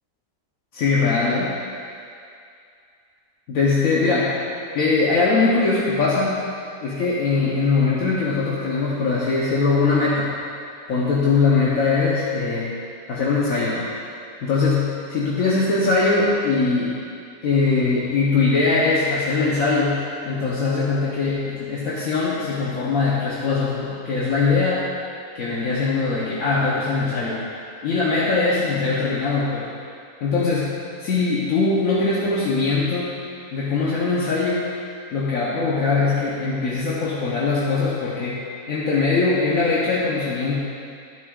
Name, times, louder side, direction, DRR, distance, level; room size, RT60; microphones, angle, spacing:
voice 1, 0.7-1.6 3.5-4.4 4.7-6.4 6.8-10.4 10.9-12.7 13.1-13.8 14.4-17.1 17.4-24.9 25.3-27.4 27.8-29.7 30.2-33.2 33.5-34.7 35.1-40.6, left 4 dB, 70° left, -6 dB, 1.4 m, -21 dB
11.0 x 9.8 x 2.4 m, 2.4 s
omnidirectional pair, 1.5 m